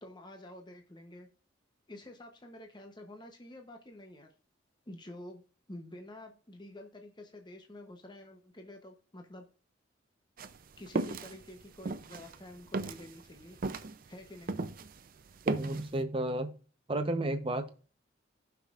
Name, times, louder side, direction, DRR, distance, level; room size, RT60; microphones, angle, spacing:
voice 1, 0.0-1.3 1.9-4.3 4.9-5.4 5.7-9.5 10.8-13.6 14.1-14.6, left 1 dB, 25° left, 4 dB, 0.8 m, -49 dB
sound 1, 10.4-15.0 15.3-15.9, right 3 dB, 45° right, 0.5 m, -35 dB
voice 2, 15.4-16.6 16.9-17.8, right 1 dB, 30° right, 8 dB, 0.8 m, -32 dB
15.0 x 5.9 x 2.5 m, 0.39 s
head